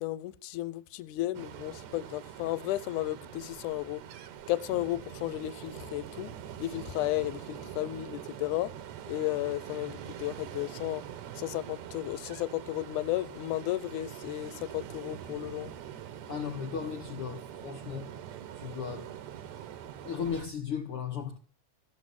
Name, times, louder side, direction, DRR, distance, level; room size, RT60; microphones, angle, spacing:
voice 1, 0.0-4.0 4.5-6.3 6.6-8.7 9.1-11.0 11.4-15.7, left 16 dB, 80° left, 2.2 m, -33 dB
Ocean, 1.3-20.5, right 10 dB, 70° right, 2.1 m, -44 dB
voice 2, 16.3-18.1 18.6-19.1 20.0-21.4, left 7 dB, 60° left, 1.5 m, -36 dB
15.5 x 7.6 x 7.6 m
omnidirectional pair, 3.7 m